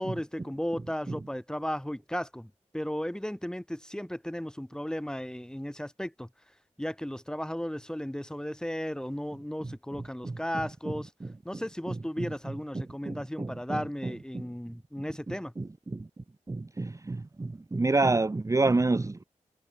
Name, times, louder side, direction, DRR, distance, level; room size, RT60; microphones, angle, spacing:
voice 1, 0.0-6.3 6.8-11.1 11.4-15.5, equal, 5° left, 2.2 m, -35 dB
voice 2, 11.9-12.3 13.1-14.4 15.3-16.1 16.5-19.2, right 3 dB, 25° right, 0.8 m, -29 dB
cardioid pair, 60°, 13 cm